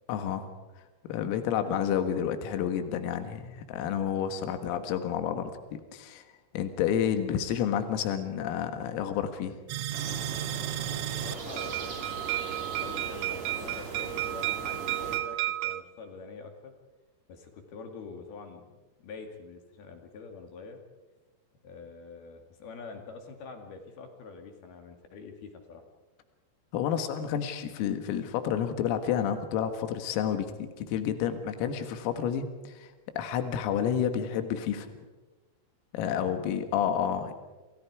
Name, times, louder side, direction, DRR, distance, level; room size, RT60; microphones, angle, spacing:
voice 1, 0.1-0.5 1.1-6.2 6.5-9.6 26.7-30.5 30.8-34.9 35.9-37.3, left 9 dB, 80° left, 8 dB, 4.3 m, -30 dB
sound 1, 9.7-15.8, right 14 dB, 75° right, 2.9 m, -33 dB
sound 2, 9.9-15.2, right 4 dB, 40° right, 3.5 m, -40 dB
voice 2, 11.1-12.3 12.8-16.7 17.3-18.7 19.0-20.8 21.6-25.8 36.0-36.3, left 4 dB, 55° left, 4 dB, 3.7 m, -45 dB
28.5 x 28.5 x 4.8 m, 1.2 s
omnidirectional pair, 6.0 m